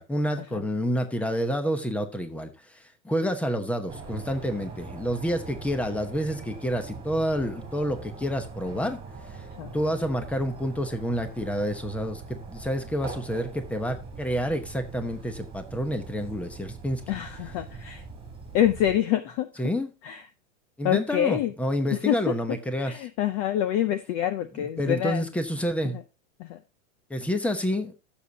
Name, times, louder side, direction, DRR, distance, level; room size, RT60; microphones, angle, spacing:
voice 1, 0.0-9.0 9.3-9.4 9.7-17.0 19.6-19.9 20.8-23.0 24.5-26.0 27.1-27.9, equal, 5° left, 0.9 m, -29 dB
sound 1, 3.9-19.0, right 4 dB, 15° right, 3.1 m, -42 dB
voice 2, 17.1-18.0 18.5-19.5 20.0-20.2 20.8-21.5 22.1-25.3 26.4-26.6, left 11 dB, 30° left, 0.5 m, -26 dB
15.0 x 7.0 x 2.8 m
supercardioid pair, 155°, 39 cm